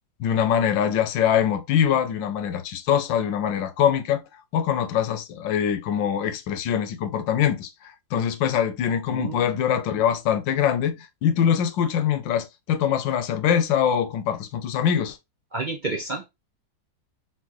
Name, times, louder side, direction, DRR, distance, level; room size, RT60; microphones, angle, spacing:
voice 1, 0.2-4.2 4.5-15.2, left 9 dB, 90° left, 1.4 m, -23 dB
voice 2, 9.1-9.6 15.5-16.3, right 3 dB, 45° right, 0.6 m, -30 dB
4.5 x 3.8 x 3.0 m
omnidirectional pair, 1.9 m